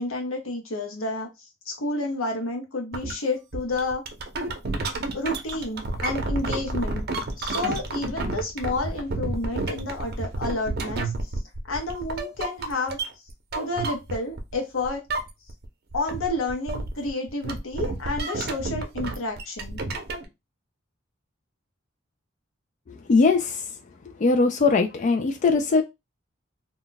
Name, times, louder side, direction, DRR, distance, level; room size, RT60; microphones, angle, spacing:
voice 1, 0.0-4.0 5.1-7.0 7.4-11.1 11.6-13.0 13.5-15.0 15.9-19.8, left 2 dB, 80° left, 0.7 m, -30 dB
sound 1, 2.9-3.1 3.5-14.6 14.8-15.7 15.9-20.3, right 2 dB, 55° right, 0.6 m, -30 dB
voice 2, 23.1-23.7 24.2-25.8, left 4 dB, 40° left, 0.3 m, -20 dB
2.2 x 2.1 x 3.8 m
head